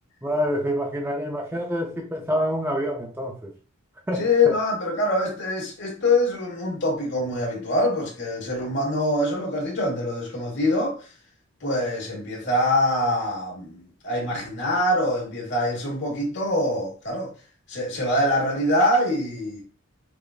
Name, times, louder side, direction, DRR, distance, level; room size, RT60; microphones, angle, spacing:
voice 1, 0.2-3.5 4.1-4.3, equal, 10° right, 0.4 m, -27 dB
voice 2, 4.2-11.0 11.6-17.3 17.7-19.6, left 1 dB, 55° left, 1.3 m, -24 dB
4.8 x 2.4 x 2.4 m
head